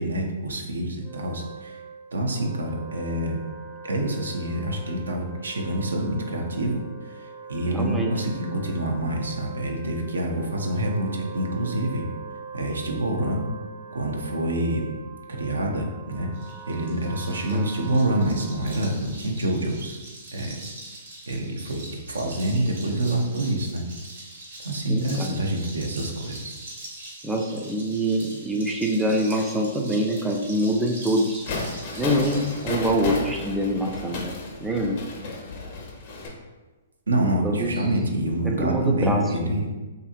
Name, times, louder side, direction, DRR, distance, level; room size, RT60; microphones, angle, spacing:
voice 1, 0.0-1.8 2.1-3.4 3.8-6.8 7.0-12.0 12.5-13.5 13.9-14.9 15.4-16.3 16.7-20.0 20.3-20.6 21.3-21.8 22.1-23.8 24.6-26.5 37.1-39.7, right 1 dB, 85° right, 1 dB, 0.5 m, -26 dB
Wind instrument woodwind instrument, 0.9-19.1, right 5 dB, 45° right, 0.7 m, -42 dB
voice 2, 7.7-8.1 17.5-17.7 24.9-25.4 27.2-31.5 32.0-35.1 37.4-37.8 38.4-39.3, right 1 dB, 5° right, 1 dB, 0.3 m, -25 dB
sound 1, 16.3-32.8, right 1 dB, 65° right, 1.1 m, -42 dB
sound 2, 31.5-36.3, left 2 dB, 45° left, 0.5 m, -33 dB
2.7 x 2.5 x 2.4 m, 1.2 s
hypercardioid pair, 125°, 0 cm